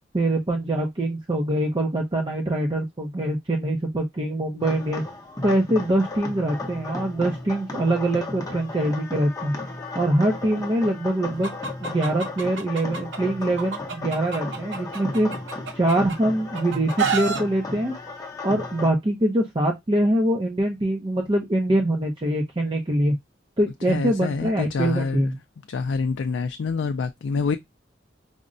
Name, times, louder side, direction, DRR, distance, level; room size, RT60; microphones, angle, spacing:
voice 1, 0.1-5.0 5.4-9.5 9.9-15.3 15.7-18.0 18.4-23.1 23.6-25.4, right 1 dB, 25° right, 0.6 m, -24 dB
sound 1, 4.6-18.9, left 2 dB, 20° left, 0.8 m, -35 dB
Chicken rooster, 11.4-13.2 13.6-16.2 16.5-17.4, right 5 dB, 75° right, 0.7 m, -29 dB
voice 2, 23.9-25.3 25.7-27.6, left 4 dB, 75° left, 0.4 m, -26 dB
5.0 x 2.2 x 2.5 m
head